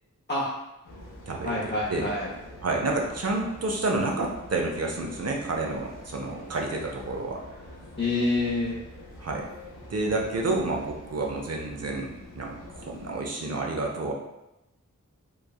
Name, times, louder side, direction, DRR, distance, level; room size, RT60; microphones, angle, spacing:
sound 1, 0.8-13.2, left 1 dB, 80° left, 0.6 m, -46 dB
voice 1, 1.4-2.3 8.0-8.8, left 2 dB, 35° left, -8 dB, 0.7 m, -27 dB
voice 2, 2.6-7.4 9.2-9.5 9.9-14.1, right 2 dB, 55° right, 0 dB, 0.5 m, -29 dB
3.1 x 2.2 x 2.2 m, 0.92 s
wide cardioid pair, 50°, 32 cm